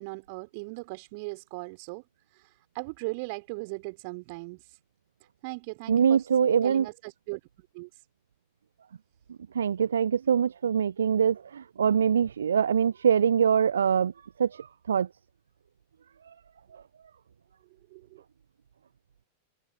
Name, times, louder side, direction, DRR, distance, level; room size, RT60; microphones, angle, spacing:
voice 1, 0.0-2.0 2.3-4.8 5.4-6.3 6.6-7.4 7.7-8.0 17.9-18.2, right 29 dB, 45° right, 4.2 m, -38 dB
voice 2, 5.9-6.9 9.5-14.1 14.4-15.1, right 7 dB, 70° right, 0.3 m, -24 dB
figure-of-eight pair, 90°, 0 cm